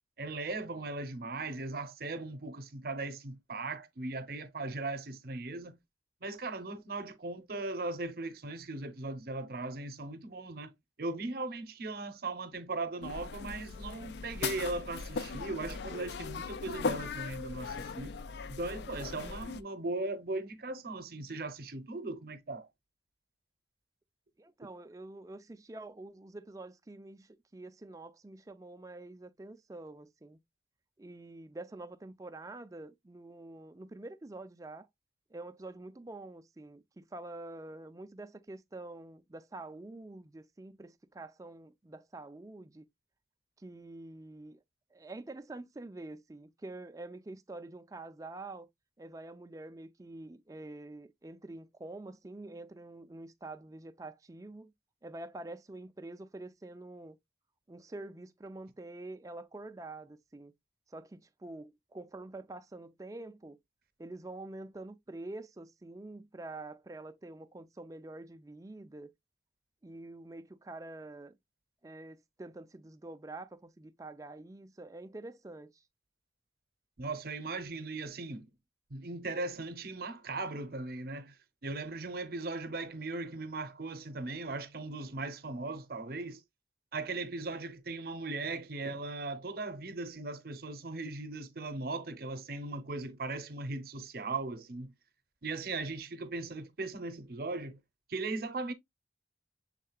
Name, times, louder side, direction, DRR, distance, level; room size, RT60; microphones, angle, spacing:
voice 1, 0.2-5.8 6.2-10.7 11.0-18.1 18.5-22.7 77.0-78.5 78.9-81.3 81.6-86.4 86.9-94.9 95.4-97.8 98.1-98.7, right 3 dB, 55° right, 0.7 m, -38 dB
sound 1, 13.0-19.6, left 5 dB, 65° left, 0.4 m, -38 dB
voice 2, 24.4-30.4 31.0-34.9 35.3-42.9 43.6-44.6 44.9-48.7 49.0-54.7 55.0-57.2 57.7-60.5 60.9-63.6 64.0-69.1 69.8-71.4 71.8-75.8, right 2 dB, 20° right, 0.4 m, -46 dB
6.5 x 3.6 x 2.3 m
head